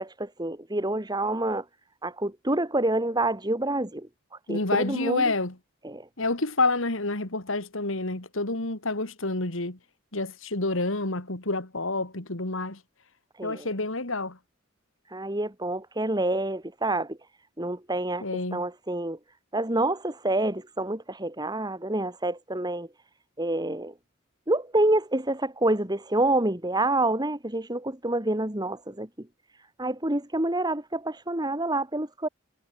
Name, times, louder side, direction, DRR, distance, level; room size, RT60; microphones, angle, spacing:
voice 1, 0.0-1.6 2.0-4.1 4.5-5.3 5.8-6.1 13.4-13.7 15.1-17.2 17.6-18.2 18.5-19.2 19.5-22.9 23.4-23.9 24.5-29.1 29.8-32.3, right 2 dB, 20° right, 2.7 m, -27 dB
voice 2, 4.5-5.5 6.2-9.8 10.1-12.8 13.4-14.4 18.2-18.6, left 2 dB, 70° left, 2.8 m, -28 dB
head